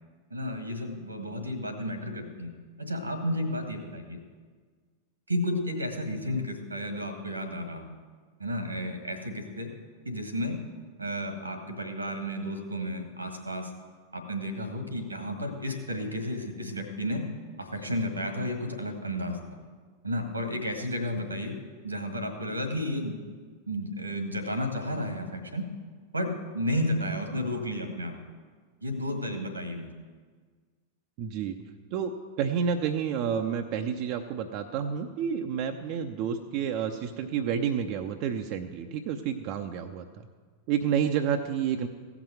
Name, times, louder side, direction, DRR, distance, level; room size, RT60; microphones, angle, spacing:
voice 1, 0.3-2.5 2.8-4.2 5.3-7.9 8.4-9.7 10.0-10.6 11.0-13.7 14.1-17.3 17.6-19.4 20.0-21.6 21.8-23.1 23.7-25.7 26.1-28.2 28.8-29.9, equal, 85° right, 7 dB, 1.7 m, -32 dB
voice 2, 31.2-31.6 31.9-40.3 40.7-41.9, right 7 dB, 45° right, 5 dB, 0.6 m, -30 dB
15.5 x 6.0 x 7.6 m, 1.6 s
figure-of-eight pair, 90°, 0 cm